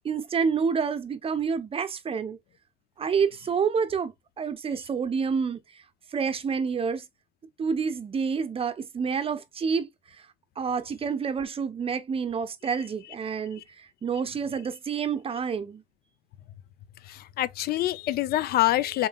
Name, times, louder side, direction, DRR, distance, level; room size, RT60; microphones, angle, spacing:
voice 1, 0.0-2.4 3.0-4.1 4.4-5.6 6.1-7.0 7.6-9.9 10.6-15.8, right 6 dB, 35° right, 0.7 m, -28 dB
voice 2, 17.0-19.1, left 15 dB, 65° left, 0.5 m, -26 dB
5.3 x 3.8 x 2.3 m
cardioid pair, 110°, 17 cm